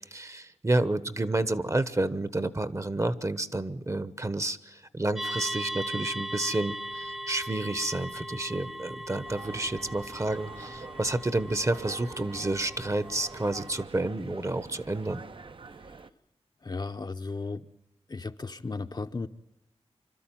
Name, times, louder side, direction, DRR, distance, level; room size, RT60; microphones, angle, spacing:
voice 1, 0.1-15.2, right 2 dB, 25° right, 1.0 m, -30 dB
sound 1, 5.2-13.8, equal, 5° right, 0.8 m, -39 dB
sound 2, 9.2-16.1, right 4 dB, 50° right, 0.7 m, -46 dB
voice 2, 16.6-17.7 18.1-19.3, left 3 dB, 40° left, 0.8 m, -35 dB
26.0 x 13.0 x 9.1 m
wide cardioid pair, 80°, 11 cm